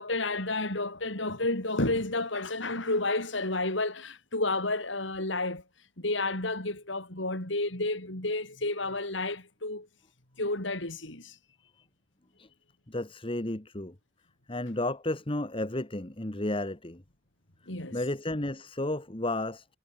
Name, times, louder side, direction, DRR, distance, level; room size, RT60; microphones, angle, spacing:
voice 1, 0.0-5.6 6.0-9.9 10.4-11.4 17.7-18.0, left 2 dB, 70° left, 5.7 m, -31 dB
voice 2, 12.9-13.9 14.5-17.0 17.9-19.7, left 1 dB, 30° left, 1.7 m, -32 dB
head